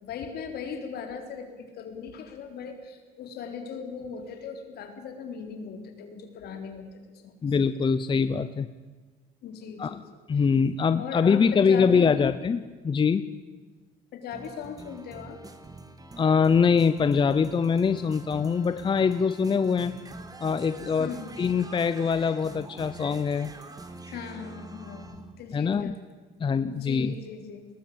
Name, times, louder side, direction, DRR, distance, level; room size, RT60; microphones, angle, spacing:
voice 1, 0.0-7.3 9.4-10.0 10.3-10.4 11.0-12.1 14.1-15.4 21.0-21.3 24.1-26.0 26.7-27.7, left 6 dB, 70° left, 5 dB, 4.0 m, -38 dB
voice 2, 7.4-8.7 9.8-10.0 10.3-13.3 16.2-19.9 20.4-23.5 25.5-26.0 26.4-27.1, left 6 dB, 30° left, 13 dB, 0.8 m, -23 dB
sound 1, 14.3-25.4, right 2 dB, 20° right, 2.2 m, -45 dB
21.5 x 19.5 x 8.8 m, 1.3 s
cardioid pair, 110°, 17 cm